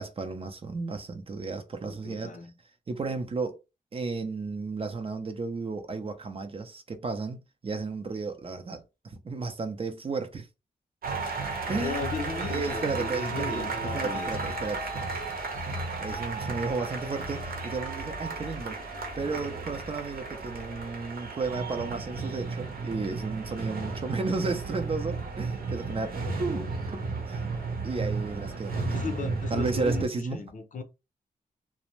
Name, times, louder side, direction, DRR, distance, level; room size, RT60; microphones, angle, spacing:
voice 1, 0.0-2.4 2.9-3.6 3.9-10.5 11.7-12.1 12.4-15.1 16.0-18.8 19.2-27.4 27.8-29.0 29.5-30.4, right 4 dB, 35° right, 0.5 m, -33 dB
voice 2, 1.8-2.5 11.8-14.3 28.9-30.8, left 5 dB, 55° left, 0.6 m, -36 dB
sound 1, 11.0-30.1, right 3 dB, 70° right, 0.8 m, -34 dB
2.5 x 2.0 x 3.0 m
wide cardioid pair, 100°, 16 cm